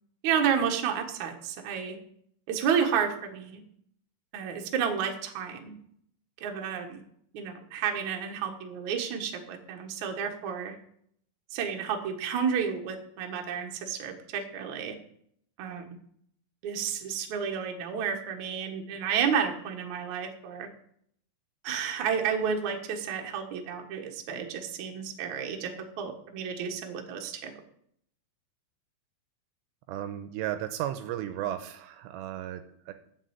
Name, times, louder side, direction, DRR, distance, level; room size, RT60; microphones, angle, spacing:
voice 1, 0.2-2.0 2.5-3.6 4.3-5.7 6.4-7.0 7.3-10.7 11.5-15.0 15.6-15.9 16.6-20.7 21.6-25.7 26.0-27.5, right 7 dB, 60° right, 2 dB, 2.1 m, -31 dB
voice 2, 29.9-32.9, right 12 dB, 85° right, 8 dB, 2.7 m, -34 dB
9.4 x 7.7 x 8.0 m, 0.69 s
omnidirectional pair, 5.2 m